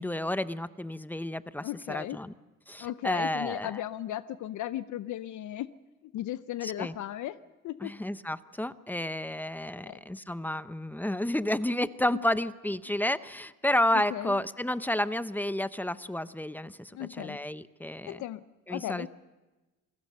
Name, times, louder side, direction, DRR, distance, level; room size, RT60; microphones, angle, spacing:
voice 1, 0.0-2.3 2.7-3.8 6.6-6.9 7.8-18.2 18.7-19.1, left 1 dB, 5° left, 14 dB, 0.7 m, -31 dB
voice 2, 1.6-2.2 2.8-5.7 6.1-7.4 7.6-7.9 9.9-10.0 13.9-14.4 16.9-17.4 18.1-18.4 18.7-19.1, left 13 dB, 75° left, 14 dB, 0.6 m, -36 dB
27.5 x 16.5 x 6.6 m, 1.1 s
cardioid pair, 90°, 30 cm